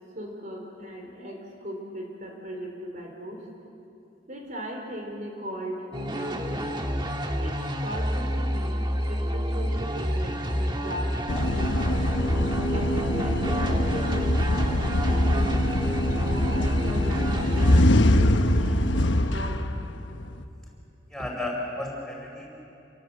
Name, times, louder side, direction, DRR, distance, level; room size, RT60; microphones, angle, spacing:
voice 1, 0.1-3.4 4.3-6.7 7.4-12.1 12.7-15.6 16.3-17.8 18.1-19.7, equal, 45° right, 1 dB, 4.0 m, -38 dB
sound 1, 5.9-17.8, equal, 25° right, 1.5 m, -29 dB
sound 2, 11.3-20.4, left 1 dB, 85° left, 1.1 m, -23 dB
voice 2, 21.1-22.5, left 1 dB, ahead, -1 dB, 5.4 m, -33 dB
28.5 x 23.0 x 7.9 m, 2.8 s
head